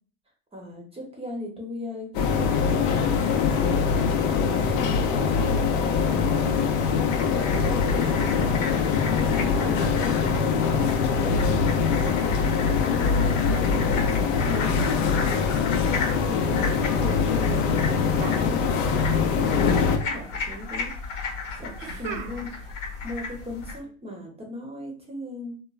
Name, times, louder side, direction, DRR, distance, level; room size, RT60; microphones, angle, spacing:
voice 1, 0.5-3.7 4.2-6.5 7.2-8.5 9.1-10.9 11.7-15.5 16.3-21.2 21.6-22.7 23.0-25.6, left 1 dB, 15° right, 0 dB, 0.7 m, -37 dB
sound 1, 2.1-20.0, left 6 dB, 70° left, 0.6 m, -23 dB
sound 2, 7.1-23.8, left 4 dB, 90° left, 1.1 m, -35 dB
sound 3, 18.1-19.1 19.4-20.2 21.8-22.7, right 7 dB, 60° right, 0.6 m, -39 dB
3.0 x 2.2 x 2.3 m, 0.42 s
supercardioid pair, 105°, 39 cm